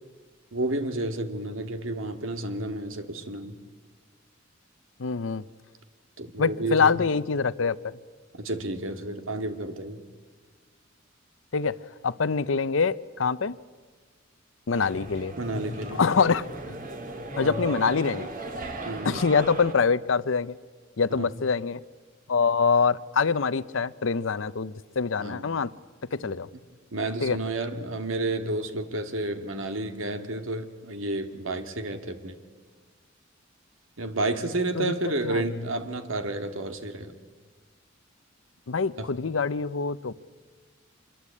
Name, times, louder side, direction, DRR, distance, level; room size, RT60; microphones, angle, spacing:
voice 1, 0.5-3.6 6.2-7.0 8.3-10.0 15.4-16.0 17.4-17.7 18.8-19.1 21.2-21.3 25.2-25.5 26.2-26.4 26.9-32.4 34.0-37.1 39.0-39.1, right 2 dB, 80° right, 8 dB, 2.1 m, -31 dB
voice 2, 5.0-5.4 6.4-8.0 11.5-11.8 12.0-13.6 14.7-15.3 15.9-16.5 17.4-18.3 19.0-20.5 21.0-21.8 22.3-25.7 26.1-26.5 27.2-27.4 34.8-35.4 38.7-40.1, left 5 dB, 70° left, 17 dB, 0.7 m, -25 dB
sound 1, 14.7-19.7, right 1 dB, 45° right, 2.5 m, -36 dB
26.0 x 22.0 x 8.5 m, 1.5 s
head